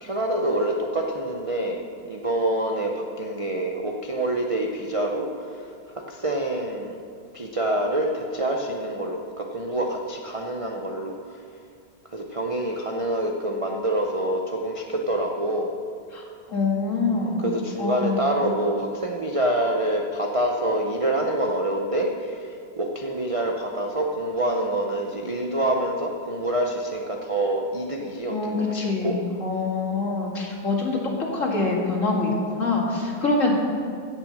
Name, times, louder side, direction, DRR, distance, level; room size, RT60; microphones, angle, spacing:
voice 1, 0.0-5.6 6.1-6.9 7.3-11.4 12.1-15.7 17.2-29.2, right 1 dB, 45° right, 0 dB, 0.4 m, -26 dB
voice 2, 16.5-17.5 17.8-18.2 28.3-31.0 31.3-33.5, left 3 dB, 45° left, -2 dB, 2.2 m, -25 dB
16.0 x 6.1 x 6.5 m, 2.2 s
omnidirectional pair, 1.9 m